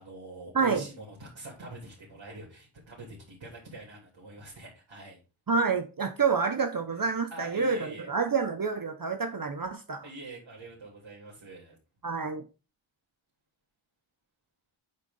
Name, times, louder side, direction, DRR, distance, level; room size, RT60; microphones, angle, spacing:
voice 1, 0.0-5.2 7.3-8.1 10.0-11.7, right 2 dB, 60° right, 3.3 m, -45 dB
voice 2, 5.5-10.0 12.0-12.4, right 5 dB, 45° right, 0.9 m, -28 dB
9.1 x 3.7 x 5.3 m
wide cardioid pair, 80°, 49 cm